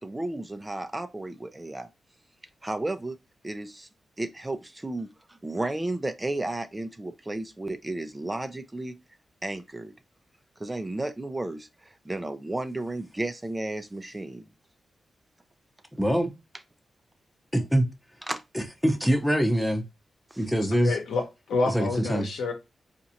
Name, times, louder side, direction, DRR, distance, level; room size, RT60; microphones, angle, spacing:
voice 1, 0.0-1.9 2.6-3.2 3.4-3.9 4.2-8.9 9.4-9.9 10.6-14.4 18.3-18.4 20.3-20.4, right 2 dB, 20° right, 0.6 m, -33 dB
voice 2, 16.0-16.3 17.5-17.8 18.5-19.8 20.4-21.0 21.7-22.3, equal, ahead, 0.9 m, -24 dB
voice 3, 20.8-22.5, left 3 dB, 85° left, 0.9 m, -28 dB
3.9 x 2.5 x 2.8 m
supercardioid pair, 45°, 0 cm